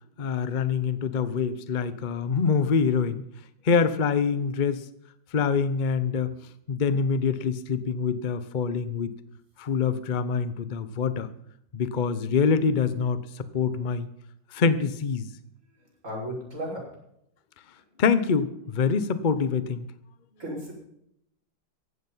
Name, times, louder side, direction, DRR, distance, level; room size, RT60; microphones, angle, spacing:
voice 1, 0.2-3.2 3.6-4.8 5.3-6.3 6.7-9.1 9.6-11.3 11.7-14.1 14.5-15.3 18.0-19.9, left 5 dB, 65° left, 13 dB, 0.4 m, -25 dB
voice 2, 15.8-16.9 20.4-20.7, equal, 35° right, -3 dB, 6.1 m, -35 dB
15.5 x 11.5 x 5.7 m, 0.75 s
omnidirectional pair, 2.2 m